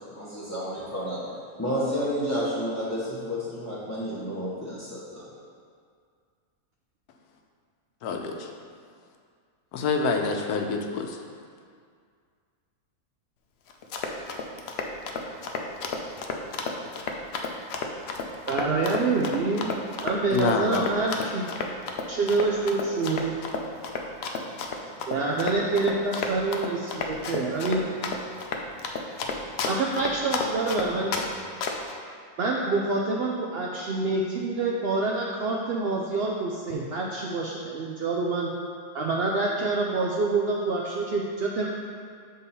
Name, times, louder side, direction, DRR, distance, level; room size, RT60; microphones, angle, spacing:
voice 1, 0.0-5.3, equal, 15° left, -10 dB, 0.6 m, -31 dB
voice 2, 8.0-8.5 9.7-11.2 20.3-20.9, left 4 dB, 90° left, 3 dB, 1.1 m, -27 dB
Run, 13.7-31.3 31.6-31.9, left 4 dB, 65° left, 0.6 m, -31 dB
voice 3, 18.5-19.7 20.0-21.4 22.1-23.3 25.1-27.8 29.6-31.2 32.4-38.5 38.9-41.7, right 3 dB, 80° right, -2 dB, 0.5 m, -26 dB
7.1 x 3.8 x 4.1 m, 2.1 s
omnidirectional pair, 1.6 m